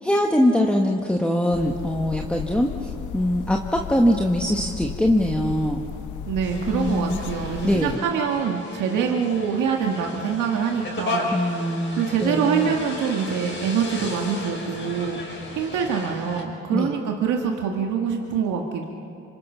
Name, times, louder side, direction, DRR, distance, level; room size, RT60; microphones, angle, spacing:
voice 1, 0.0-5.8 6.7-7.2 7.6-8.0 11.3-12.7 16.7-17.0, equal, 5° left, 1 dB, 1.5 m, -22 dB
sound 1, 1.5-8.0, left 9 dB, 80° left, 0.8 m, -35 dB
voice 2, 6.3-11.3 12.0-18.9, right 7 dB, 85° right, 1 dB, 1.8 m, -25 dB
sound 2, 6.4-16.4, left 2 dB, 40° left, 5.7 m, -35 dB
27.0 x 25.5 x 5.7 m, 2.8 s
cardioid pair, 90°, 30 cm